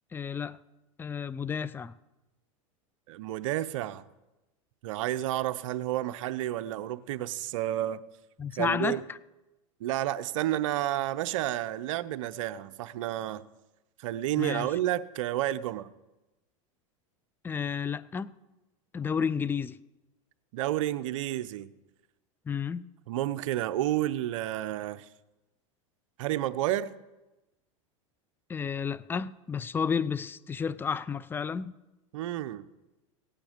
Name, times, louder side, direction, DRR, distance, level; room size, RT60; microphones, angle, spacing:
voice 1, 0.1-0.6 1.0-1.9 8.4-9.2 14.4-14.7 17.4-18.3 18.9-19.8 22.5-22.9 28.5-31.7, left 6 dB, 10° left, 0.4 m, -31 dB
voice 2, 3.1-4.0 4.8-8.0 8.6-9.0 9.8-13.5 14.0-15.9 20.5-21.7 23.1-25.1 26.2-26.9 32.1-32.7, right 13 dB, 70° right, 0.7 m, -30 dB
17.0 x 9.0 x 5.1 m
hypercardioid pair, 110°, 17 cm